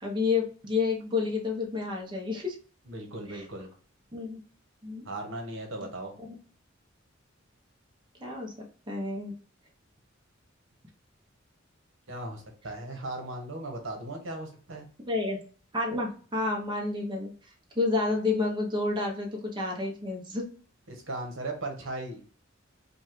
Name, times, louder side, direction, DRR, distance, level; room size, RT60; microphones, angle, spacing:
voice 1, 0.0-2.6 3.3-3.4 4.1-4.4 4.8-5.0 8.2-8.5 8.9-9.3 15.0-15.4 15.7-17.3 17.8-20.5, left 3 dB, 25° right, -1 dB, 0.8 m, -29 dB
voice 2, 2.9-3.7 5.0-6.1 12.1-14.9 20.9-22.2, right 2 dB, 70° right, 3 dB, 1.1 m, -37 dB
5.3 x 2.3 x 3.1 m, 0.41 s
head